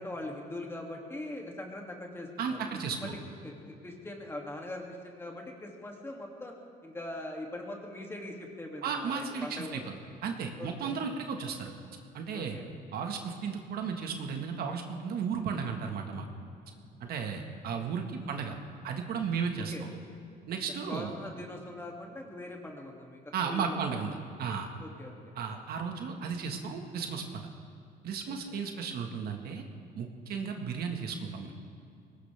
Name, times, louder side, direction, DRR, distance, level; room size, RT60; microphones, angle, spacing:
voice 1, 0.0-2.7 3.0-3.2 3.4-3.5 3.8-6.5 6.8-9.8 10.6-10.9 12.3-12.7 19.7-19.8 20.7-23.8 24.8-25.6 28.3-28.7, left 1 dB, 15° left, 0 dB, 2.6 m, -42 dB
voice 2, 2.4-3.1 8.8-10.0 10.2-11.7 12.1-12.6 12.9-16.3 17.0-18.6 18.8-19.7 20.5-21.1 23.3-24.7 25.4-27.4 28.0-29.6 29.9-31.5, right 6 dB, 65° right, 4 dB, 1.7 m, -34 dB
21.5 x 19.0 x 3.6 m, 2.5 s
cardioid pair, 110°, 17 cm